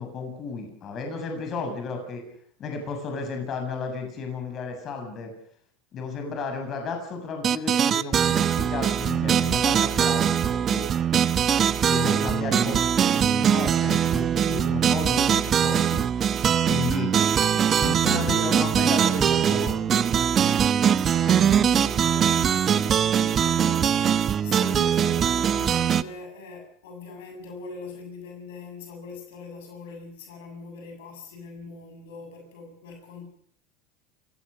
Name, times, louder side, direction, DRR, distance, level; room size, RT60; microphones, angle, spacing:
voice 1, 0.0-2.2 2.6-5.3 5.9-10.9 11.8-16.0 16.6-17.1 17.8-19.8, left 4 dB, 40° left, 7.2 m, -33 dB
sound 1, 7.4-26.0, right 8 dB, 35° right, 0.9 m, -22 dB
voice 2, 17.4-18.6 20.9-33.3, left 4 dB, 80° left, 7.6 m, -42 dB
29.0 x 17.0 x 6.6 m
hypercardioid pair, 100°, 0 cm